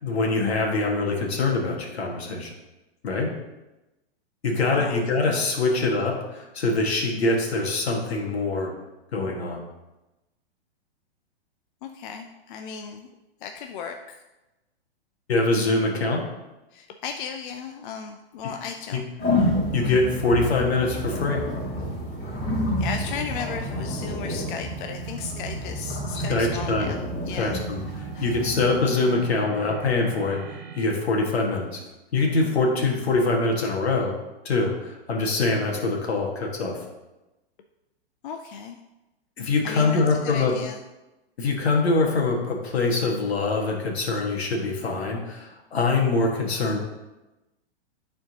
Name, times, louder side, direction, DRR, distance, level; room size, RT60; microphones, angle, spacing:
voice 1, 0.0-2.5 3.0-3.3 4.4-8.7 9.1-9.6 15.3-16.2 18.9-19.0 19.7-21.4 26.1-26.9 27.3-31.8 32.1-34.1 34.5-36.8 39.4-40.5 41.4-46.8, left 3 dB, 80° left, 0 dB, 1.8 m, -24 dB
voice 2, 11.8-13.1 13.4-14.2 16.7-19.0 22.8-27.6 28.1-28.3 38.2-38.8 39.6-40.8, left 6 dB, 55° left, 5 dB, 0.6 m, -36 dB
sound 1, 19.2-28.8, left 1 dB, 30° left, 2.7 m, -29 dB
sound 2, 24.1-30.9, right 7 dB, 75° right, 0.8 m, -40 dB
12.0 x 4.3 x 2.9 m, 1.0 s
hypercardioid pair, 135°, 31 cm